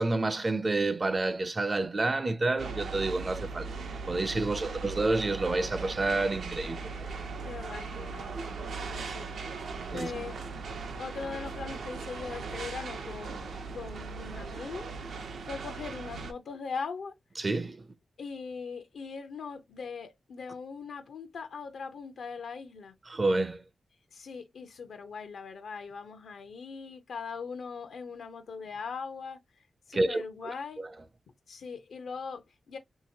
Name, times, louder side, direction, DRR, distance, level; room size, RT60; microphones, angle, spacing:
voice 1, 0.0-3.7 4.1-7.1 9.9-10.1 17.4-17.9 23.1-23.6 29.9-30.9, right 2 dB, 35° right, 0.4 m, -29 dB
sound 1, 2.6-16.3, right 4 dB, 80° right, 0.6 m, -38 dB
voice 2, 4.5-5.0 7.5-8.4 8.9-9.3 9.9-10.5 11.0-17.1 18.2-22.9 24.1-29.4 29.9-30.9 31.5-32.8, left 5 dB, 80° left, 0.6 m, -40 dB
2.8 x 2.8 x 2.7 m
cardioid pair, 85°, 0 cm